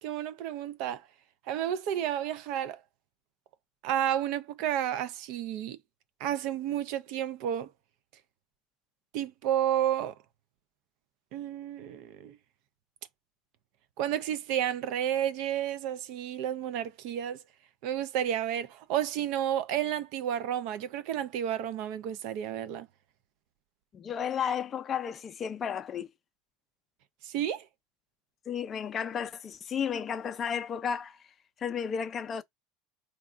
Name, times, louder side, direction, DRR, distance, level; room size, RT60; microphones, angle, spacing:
voice 1, 0.0-1.0 1.5-2.8 3.8-5.8 6.2-7.7 9.1-10.1 11.3-12.4 14.0-17.4 17.8-22.9 27.2-27.6, right 10 dB, 65° right, 0.5 m, -31 dB
voice 2, 23.9-26.1 28.5-31.2 31.6-32.4, left 7 dB, 30° left, 0.5 m, -33 dB
4.6 x 2.3 x 2.5 m
supercardioid pair, 130°, 0 cm